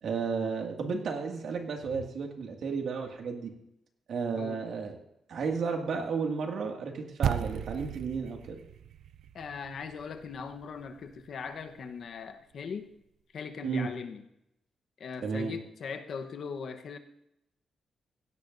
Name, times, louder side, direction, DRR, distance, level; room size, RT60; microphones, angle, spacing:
voice 1, 0.0-3.5 4.1-5.0 5.3-8.6 13.6-13.9 15.2-15.6, right 5 dB, 70° right, 2 dB, 2.1 m, -33 dB
sound 1, 7.2-11.7, right 9 dB, 85° right, 0.4 m, -37 dB
voice 2, 9.3-12.9 13.3-14.2 15.0-17.0, left 5 dB, 55° left, 6 dB, 1.0 m, -39 dB
17.0 x 16.5 x 2.6 m, 0.82 s
wide cardioid pair, 175°, 0 cm